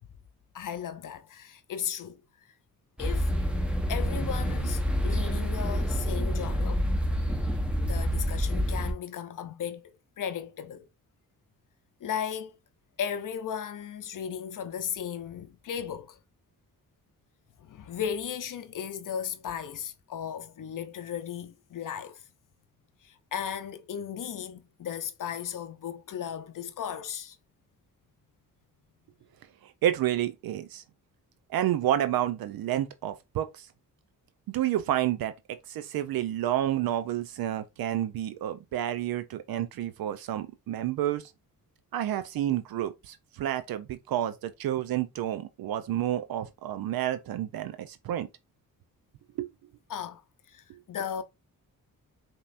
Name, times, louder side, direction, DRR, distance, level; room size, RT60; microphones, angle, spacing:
voice 1, 0.5-2.2 3.0-3.3 3.9-6.8 7.8-9.9 10.2-10.9 12.0-12.6 13.0-16.2 17.6-22.2 23.0-27.4 49.9-50.2 50.5-51.2, left 8 dB, 60° left, 0.6 m, -36 dB
sound 1, 3.0-8.9, equal, 5° right, 0.8 m, -28 dB
voice 2, 29.6-30.8 31.5-33.7 34.5-41.3 41.9-48.3 49.4-49.5, right 12 dB, 75° right, 0.5 m, -30 dB
5.2 x 3.0 x 2.4 m
cardioid pair, 80°, 36 cm